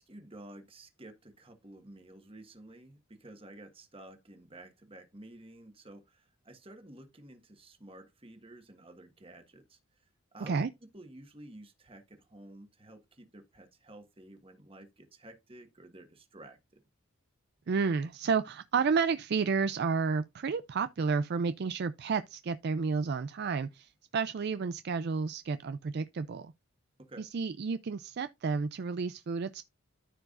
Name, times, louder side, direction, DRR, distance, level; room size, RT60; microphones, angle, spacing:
voice 1, 0.0-9.8 10.3-10.7 10.9-16.8 27.0-27.3, right 1 dB, 25° right, 1.5 m, -52 dB
voice 2, 17.7-26.5 27.2-29.6, right 5 dB, 50° right, 0.4 m, -31 dB
13.5 x 4.7 x 2.5 m
head